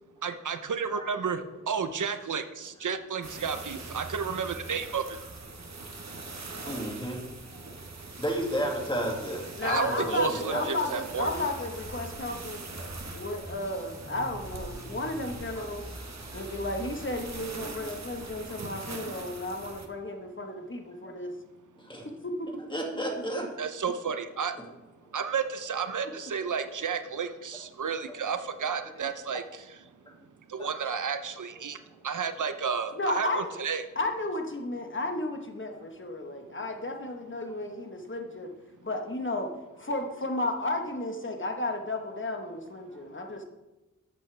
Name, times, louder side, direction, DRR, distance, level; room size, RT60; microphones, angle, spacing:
voice 1, 0.2-1.4 1.7-5.0 9.6-11.3 23.6-24.5 25.1-29.4 30.5-31.8 32.0-33.8, right 6 dB, 90° right, 9 dB, 0.7 m, -31 dB
sound 1, 3.2-19.9, right 3 dB, 60° right, 1.3 m, -42 dB
voice 2, 6.7-7.2 7.6-7.7 8.2-10.9 15.6-15.7 16.3-16.4 17.7-17.8 21.0-21.1 21.8-22.1 22.7-23.5 30.6-30.7 30.9-31.0 32.8-32.9 38.8-38.9 42.9-43.0, right 1 dB, 15° left, 0 dB, 2.2 m, -33 dB
voice 3, 9.6-12.6 13.1-15.8 16.3-21.3 22.4-22.6 33.0-33.5 33.9-38.5 38.8-39.5 39.8-43.4, left 2 dB, 40° left, 3 dB, 1.3 m, -33 dB
sound 2, 11.1-17.7, equal, 10° right, 1.1 m, -46 dB
13.0 x 8.4 x 3.4 m, 1.1 s
wide cardioid pair, 80°, 30 cm